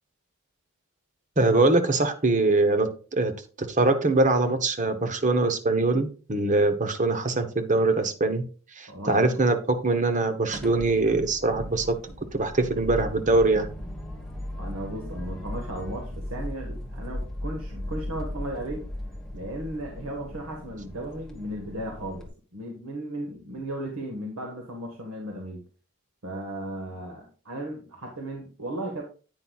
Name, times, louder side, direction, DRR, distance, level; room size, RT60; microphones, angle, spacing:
voice 1, 1.4-3.3 3.6-8.4 8.7-12.0 12.3-13.7, right 2 dB, 35° right, 9 dB, 1.0 m, -23 dB
voice 2, 8.9-9.4 14.5-18.9 19.3-25.6 26.2-29.0, right 1 dB, 85° right, 1 dB, 1.6 m, -35 dB
sound 1, 10.5-22.3, left 1 dB, ahead, 1.3 m, -37 dB
9.8 x 8.9 x 2.4 m, 0.38 s
head